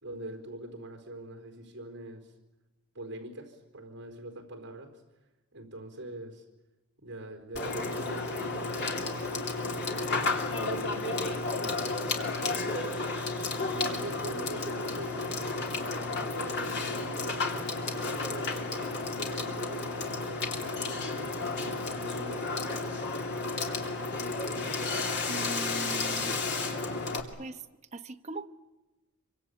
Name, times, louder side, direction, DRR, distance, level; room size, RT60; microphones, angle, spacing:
voice 1, 0.0-2.3 2.9-5.0 5.5-6.4 7.0-9.9 10.4-12.1 12.3-13.0 13.7-18.6 19.2-23.1, right 1 dB, 55° right, 4 dB, 4.4 m, -44 dB
Water / Water tap faucet / Sink (filling or washing), 7.5-27.2, left 3 dB, 50° left, 3.0 m, -32 dB
voice 2, 25.3-26.4 27.4-27.6 27.9-28.5, right 2 dB, 30° right, 5 dB, 1.0 m, -40 dB
26.0 x 24.5 x 8.4 m, 1.1 s
head